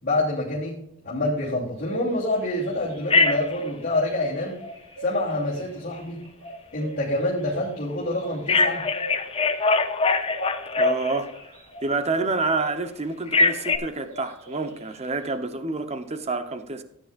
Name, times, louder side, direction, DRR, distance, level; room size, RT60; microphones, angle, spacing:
voice 1, 0.0-4.6 5.0-6.2 6.7-8.9, left 1 dB, 45° left, 2.9 m, -27 dB
sound 1, 1.4-12.9 13.2-15.3, right 2 dB, 80° right, 4.4 m, -42 dB
Telephone, 3.1-3.6 8.5-11.4 13.3-13.8, left 3 dB, 25° left, 0.8 m, -22 dB
voice 2, 10.8-11.3 11.8-16.8, right 3 dB, 30° right, 0.9 m, -28 dB
15.5 x 9.0 x 2.5 m
head